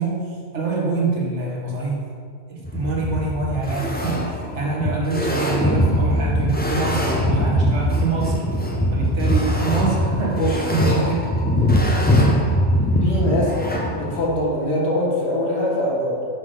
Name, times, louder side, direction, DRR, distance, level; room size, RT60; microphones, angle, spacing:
voice 1, 0.0-2.1 2.5-8.4 8.9-10.4 10.7-11.1 12.1-12.5, right 3 dB, 70° right, -3 dB, 1.5 m, -25 dB
sound 1, 2.6-14.3, equal, 15° left, 0.4 m, -21 dB
voice 2, 13.0-13.6 14.0-16.3, left 1 dB, 65° left, -3 dB, 1.5 m, -22 dB
5.9 x 3.8 x 5.3 m, 2.1 s
omnidirectional pair, 1.2 m